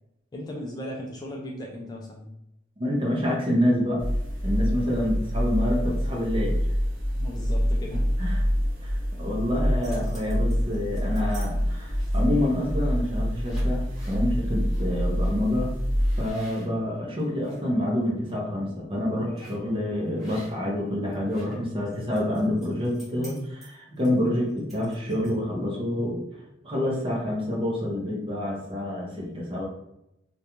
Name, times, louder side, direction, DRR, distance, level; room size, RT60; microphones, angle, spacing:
voice 1, 0.3-2.3 7.1-8.2, left 1 dB, 20° left, -1 dB, 0.3 m, -37 dB
voice 2, 2.8-4.1 4.4-6.6 8.2-8.4 8.8-15.7 16.2-26.2 26.6-29.7, left 1 dB, 30° right, -2 dB, 0.6 m, -27 dB
sound 1, 4.0-16.3, equal, 70° right, 0.6 m, -26 dB
sound 2, 9.8-11.5 11.9-12.4 13.0-13.1 13.4-14.2 14.7-14.8 15.2-15.4 15.9-17.6 18.1-18.3 19.4-19.7 20.2-20.8 21.1-25.5, equal, ahead, 1.1 m, -51 dB
2.5 x 2.2 x 2.9 m, 0.84 s
head